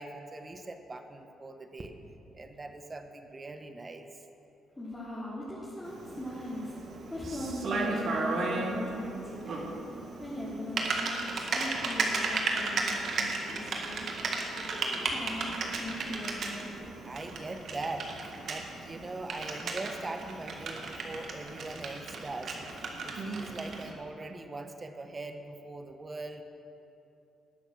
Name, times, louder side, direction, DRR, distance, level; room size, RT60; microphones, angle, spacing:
voice 1, 0.0-1.9 2.3-4.1 17.0-22.6 23.0-26.4, right 2 dB, 25° right, 6 dB, 1.1 m, -41 dB
voice 2, 4.8-6.8 7.1-9.8 10.2-11.3 11.5-14.1 14.6-16.7, left 1 dB, 15° left, -9 dB, 3.1 m, -39 dB
Typing, 5.8-23.9, right 3 dB, 60° right, 1.8 m, -35 dB
19.0 x 7.0 x 6.2 m, 2.8 s
cardioid pair, 90°, 0 cm